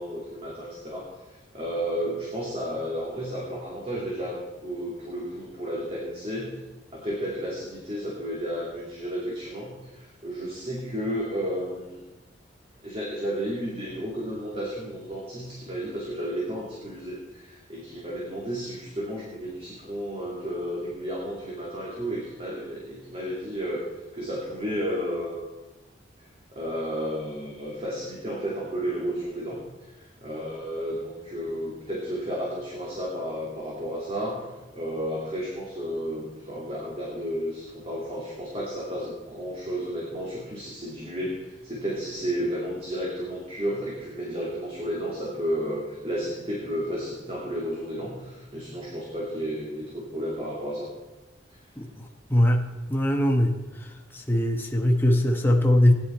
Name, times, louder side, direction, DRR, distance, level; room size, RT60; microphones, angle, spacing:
voice 1, 0.0-6.6 6.9-12.0 12.8-23.8 24.1-25.4 26.5-29.6 29.9-34.4 34.7-50.9, equal, 35° right, -4 dB, 2.3 m, -32 dB
voice 2, 51.8-53.6 53.8-55.9, left 1 dB, 10° left, 1 dB, 1.0 m, -22 dB
17.0 x 10.5 x 4.3 m, 1.1 s
head